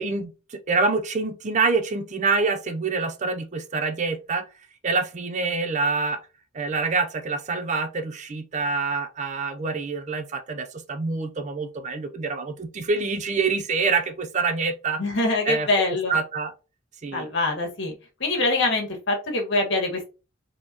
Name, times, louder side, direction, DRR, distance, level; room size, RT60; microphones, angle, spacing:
voice 1, 0.0-4.5 4.8-6.2 6.5-15.0 15.5-15.7 16.1-16.5 17.0-17.3, right 4 dB, 35° right, 0.4 m, -26 dB
voice 2, 15.0-16.1 17.1-17.9 18.2-20.0, left 2 dB, 60° left, 1.6 m, -24 dB
4.5 x 3.0 x 2.8 m
head